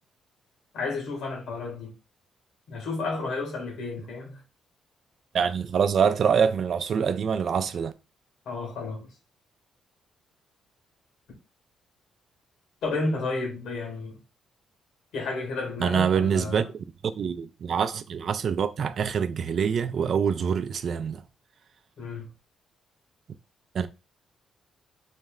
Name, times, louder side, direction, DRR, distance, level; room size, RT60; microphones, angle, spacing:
voice 1, 0.7-1.9 2.7-4.4 8.4-9.1 12.8-14.2 15.1-16.7 22.0-22.3, left 3 dB, 75° left, 1.7 m, -32 dB
voice 2, 5.3-7.9 15.8-16.7 17.0-21.2 23.7-23.9, right 7 dB, 55° right, 0.4 m, -25 dB
4.2 x 2.1 x 3.7 m
cardioid pair, 90°, 0 cm